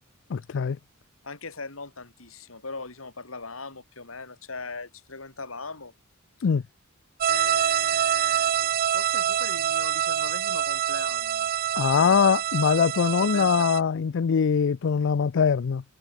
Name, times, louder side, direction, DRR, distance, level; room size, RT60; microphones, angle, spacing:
voice 1, 0.3-0.8 6.4-6.6 11.8-15.8, left 6 dB, 60° left, 0.4 m, -22 dB
voice 2, 1.2-5.9 7.3-11.5 11.9-12.2 13.3-13.5, left 3 dB, 75° left, 3.6 m, -39 dB
sound 1, 7.2-13.8, right 10 dB, 45° right, 0.4 m, -26 dB
open air
head